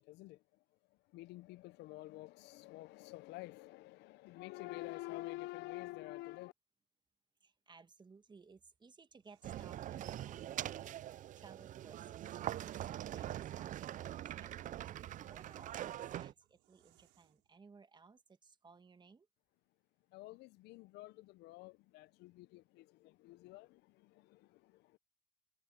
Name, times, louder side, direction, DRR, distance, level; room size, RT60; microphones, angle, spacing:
voice 1, 0.0-6.5 20.1-25.0, left 19 dB, 70° left, 0.6 m, -49 dB
voice 2, 7.4-19.3, right 4 dB, 25° right, 1.8 m, -61 dB
sound 1, 9.2-11.0 12.1-14.2 14.6-17.5, right 18 dB, 70° right, 4.2 m, -68 dB
sound 2, 9.4-16.3, right 12 dB, 45° right, 0.5 m, -43 dB
supercardioid pair, 85°, 18 cm